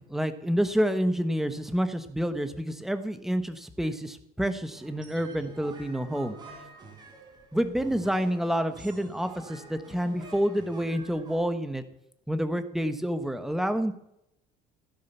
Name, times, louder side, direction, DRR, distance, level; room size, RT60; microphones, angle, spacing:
voice 1, 0.0-6.4 7.5-11.8 12.3-13.9, equal, ahead, 9 dB, 1.1 m, -28 dB
sound 1, 4.7-11.4, right 2 dB, 25° right, 3.9 m, -48 dB
15.5 x 10.5 x 6.8 m, 0.79 s
cardioid pair, 165°, 18 cm